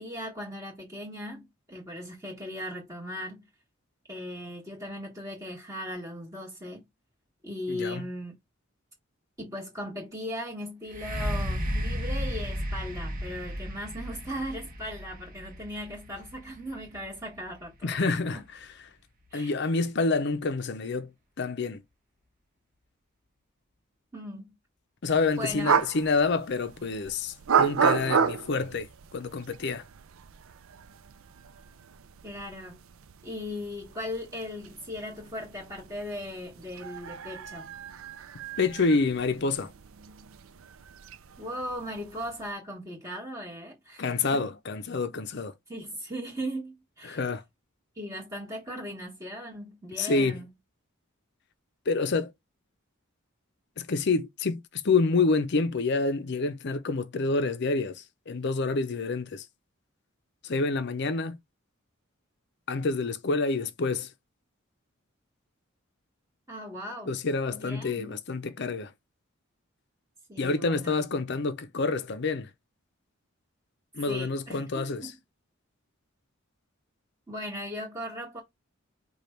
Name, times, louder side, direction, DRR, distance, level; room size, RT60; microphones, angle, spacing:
voice 1, 0.0-3.5 4.1-6.8 7.4-8.4 9.4-18.4 19.3-19.5 24.1-24.6 25.4-25.8 32.2-32.8 33.2-37.7 41.4-44.5 45.7-47.3 47.9-50.5 66.5-67.1 67.5-68.2 70.3-71.0 74.1-75.1 77.3-78.4, equal, 15° right, 1.5 m, -38 dB
voice 2, 7.7-8.0 17.8-18.4 19.3-21.1 21.4-21.8 25.0-29.8 38.6-39.7 44.0-45.5 47.0-47.4 50.0-50.4 51.9-52.3 53.8-59.4 60.4-61.4 62.7-64.1 67.1-68.9 70.4-72.5 73.9-75.1, left 3 dB, 55° left, 0.6 m, -28 dB
sound 1, 10.9-18.6 19.3-19.4, equal, 45° right, 1.0 m, -34 dB
sound 2, 25.1-42.5, right 6 dB, 80° right, 0.5 m, -33 dB
5.1 x 2.4 x 4.3 m
head